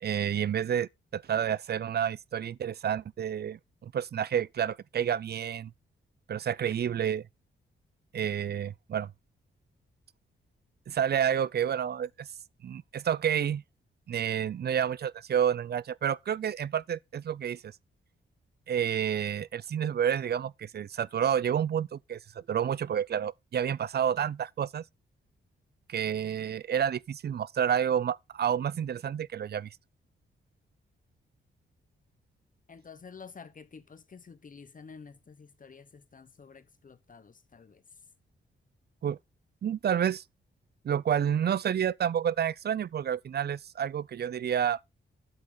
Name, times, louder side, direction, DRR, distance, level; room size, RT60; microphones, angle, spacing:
voice 1, 0.0-5.7 6.3-7.2 8.1-9.1 10.9-12.3 12.6-13.6 14.1-17.7 18.7-24.8 25.9-29.7 39.0-39.2 39.6-40.2 40.8-44.8, right 9 dB, 55° right, 0.5 m, -29 dB
voice 2, 32.7-37.8, left 5 dB, 40° left, 1.1 m, -50 dB
12.0 x 7.3 x 4.0 m
cardioid pair, 95°, 21 cm